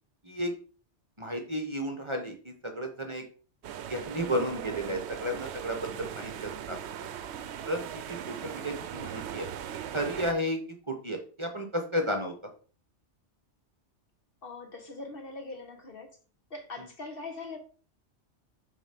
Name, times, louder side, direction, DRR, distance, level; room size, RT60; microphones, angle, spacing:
voice 1, 1.2-3.3 3.9-6.8 7.6-9.5 9.9-12.5 16.8-16.9, equal, 25° right, 1.0 m, -33 dB
sound 1, 3.6-10.3, right 9 dB, 70° right, 0.9 m, -39 dB
voice 2, 14.4-16.1 16.5-17.6, left 3 dB, 55° left, 1.6 m, -41 dB
6.9 x 3.7 x 5.9 m
omnidirectional pair, 1.2 m